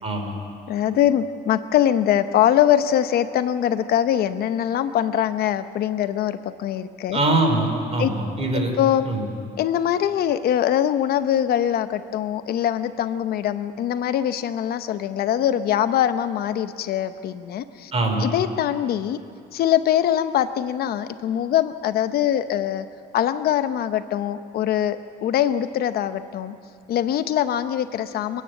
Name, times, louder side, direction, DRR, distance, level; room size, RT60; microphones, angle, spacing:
voice 1, 0.0-0.3 7.1-8.7 9.1-9.2 17.9-18.2, right 2 dB, 35° right, 3 dB, 4.5 m, -22 dB
voice 2, 0.7-7.2 8.0-8.1 8.8-9.1 9.6-17.9 18.2-19.2 19.5-22.9 23.1-26.5 26.9-28.4, left 10 dB, 65° left, 11 dB, 0.8 m, -22 dB
29.0 x 10.0 x 9.3 m, 2.6 s
cardioid pair, 110°, 17 cm